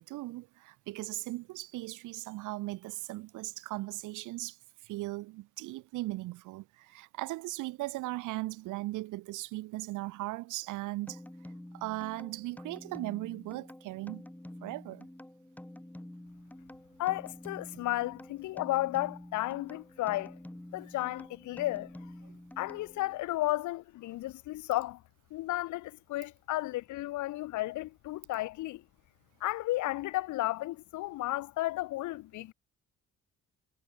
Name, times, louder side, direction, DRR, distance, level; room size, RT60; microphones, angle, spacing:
voice 1, 0.0-11.2 11.7-14.2 14.6-15.1 17.7-17.9 22.3-22.4, right 19 dB, 85° right, 0.6 m, -38 dB
sound 1, 11.1-23.2, left 1 dB, 5° left, 2.5 m, -48 dB
voice 2, 17.0-20.4 20.7-21.9 22.6-25.0 25.3-28.8 29.4-32.5, left 17 dB, 75° left, 0.5 m, -33 dB
cardioid pair, 90°, 30 cm